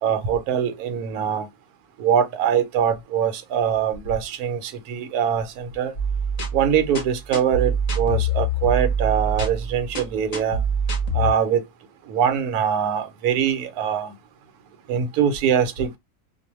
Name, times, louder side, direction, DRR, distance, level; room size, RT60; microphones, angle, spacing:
voice 1, 0.0-1.5 2.0-5.9 6.5-10.6 11.1-11.6 12.1-14.1 14.9-16.0, right 8 dB, 85° right, 1.1 m, -23 dB
sound 1, 5.9-11.3, right 1 dB, 40° left, 0.6 m, -25 dB
2.6 x 2.1 x 2.9 m
omnidirectional pair, 1.6 m